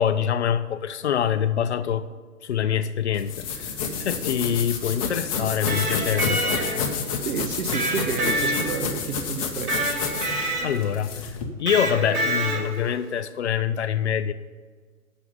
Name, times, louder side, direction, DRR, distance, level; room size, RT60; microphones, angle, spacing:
voice 1, 0.0-2.0 2.4-3.7 4.0-6.9 10.6-11.1 11.6-14.3, left 9 dB, 50° left, 12 dB, 0.5 m, -25 dB
sound 1, 3.1-11.4, left 5 dB, 25° left, 0.9 m, -29 dB
Electric guitar, 5.5-7.0 7.7-9.1 9.7-10.9 11.7-12.9, right 1 dB, 85° right, 2.4 m, -27 dB
voice 2, 7.2-10.1, right 7 dB, 70° right, 11 dB, 0.9 m, -31 dB
8.2 x 6.2 x 7.9 m, 1.5 s
hypercardioid pair, 145°, 44 cm